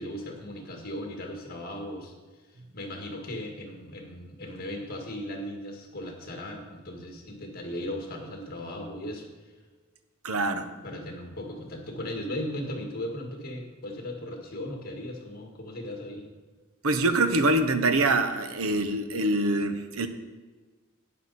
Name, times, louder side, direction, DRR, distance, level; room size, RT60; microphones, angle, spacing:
voice 1, 0.0-2.1 2.5-9.3 10.8-16.2, left 1 dB, 45° left, 1 dB, 1.9 m, -37 dB
voice 2, 10.2-10.7 16.8-20.1, right 2 dB, 85° right, 9 dB, 0.9 m, -24 dB
12.0 x 9.3 x 4.2 m, 1.4 s
head